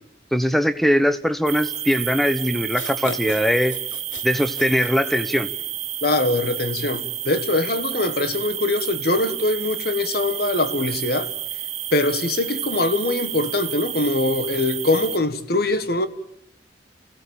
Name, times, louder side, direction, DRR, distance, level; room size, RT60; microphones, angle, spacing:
voice 1, 0.3-3.8 4.2-5.5, equal, ahead, 1.0 m, -21 dB
sound 1, 1.5-15.2, right 11 dB, 35° right, 1.4 m, -30 dB
sound 2, 2.7-5.5, left 5 dB, 90° left, 1.1 m, -38 dB
voice 2, 6.0-11.3 11.9-16.1, left 2 dB, 55° left, 1.5 m, -22 dB
29.0 x 16.5 x 8.8 m
head